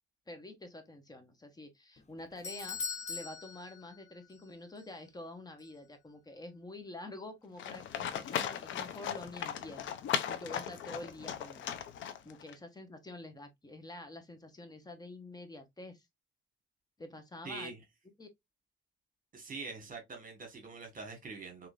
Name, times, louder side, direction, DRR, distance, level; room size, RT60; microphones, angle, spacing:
voice 1, 0.3-11.8 12.2-16.1 17.0-17.7 18.2-18.3, left 2 dB, 20° left, 1.0 m, -47 dB
Doorbell, 2.0-4.5 4.8-4.9 5.6-5.7, left 5 dB, 35° left, 0.7 m, -42 dB
Livestock farm animals working animals, 7.6-12.5, left 9 dB, 75° left, 0.6 m, -37 dB
voice 2, 17.4-17.8 19.3-21.7, right 3 dB, 45° right, 1.4 m, -44 dB
3.7 x 2.9 x 2.4 m
cardioid pair, 90°, 20 cm